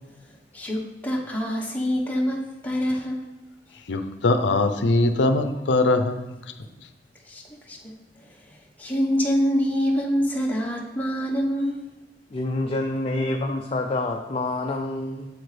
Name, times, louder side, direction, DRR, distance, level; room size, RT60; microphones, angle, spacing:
voice 1, 0.5-3.2 7.2-11.9, equal, 10° left, -2 dB, 1.1 m, -26 dB
voice 2, 3.9-6.3, left 2 dB, 90° left, 8 dB, 0.6 m, -21 dB
voice 3, 12.3-15.3, left 2 dB, 35° left, 2 dB, 0.5 m, -27 dB
8.0 x 7.3 x 3.3 m, 1.1 s
head